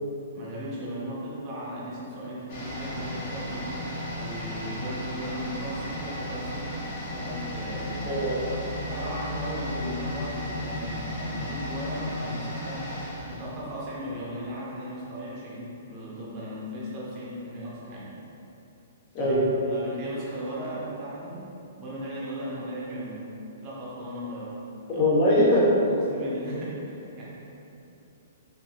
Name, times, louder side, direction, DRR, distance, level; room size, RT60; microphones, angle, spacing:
voice 1, 0.3-3.7 4.1-8.1 8.9-12.9 13.2-18.1 19.2-19.4 19.6-21.5 21.8-23.3 23.6-24.6 24.9-25.1 25.9-27.2, equal, 20° right, -7 dB, 0.7 m, -37 dB
sound 1, 2.5-14.2 14.5-14.6, left 1 dB, 40° left, 0.8 m, -34 dB
voice 2, 8.1-8.4 9.7-9.9 19.1-19.5 24.9-25.7, left 1 dB, 25° left, -7 dB, 0.5 m, -22 dB
3.5 x 2.6 x 2.7 m, 2.9 s
hypercardioid pair, 170°, 0 cm